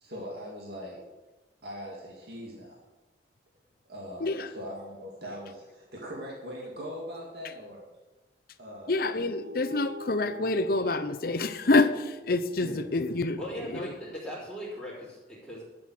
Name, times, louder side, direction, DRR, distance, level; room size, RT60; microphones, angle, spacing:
voice 1, 0.0-1.0 1.6-2.8 3.9-7.9 8.6-9.0 12.6-12.8, equal, 60° right, -3 dB, 2.2 m, -41 dB
voice 2, 4.2-4.5 8.9-13.4 13.7-13.9, left 2 dB, 55° left, 9 dB, 0.7 m, -27 dB
sound 1, 9.2-14.0, left 1 dB, 90° right, 0.8 m, -46 dB
voice 3, 13.4-15.6, equal, ahead, -11 dB, 3.8 m, -39 dB
12.0 x 7.7 x 6.5 m, 1.1 s
head